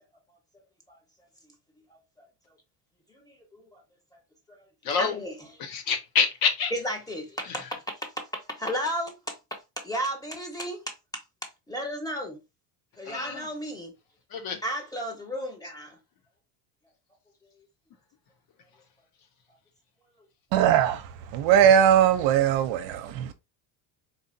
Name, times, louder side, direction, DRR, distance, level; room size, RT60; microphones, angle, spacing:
voice 1, 1.9-2.3 3.1-3.8 4.8-5.7 6.7-9.3 9.8-10.8 11.7-12.4 13.0-13.9 14.6-16.0 17.6-17.7, equal, 5° left, 1.2 m, -34 dB
voice 2, 4.8-5.2 5.6-6.7 13.1-13.5 14.3-14.6, left 5 dB, 45° left, 0.8 m, -27 dB
voice 3, 20.5-21.0 21.3-23.3, right 9 dB, 60° right, 0.7 m, -20 dB
4.1 x 2.7 x 2.6 m
supercardioid pair, 110°, 49 cm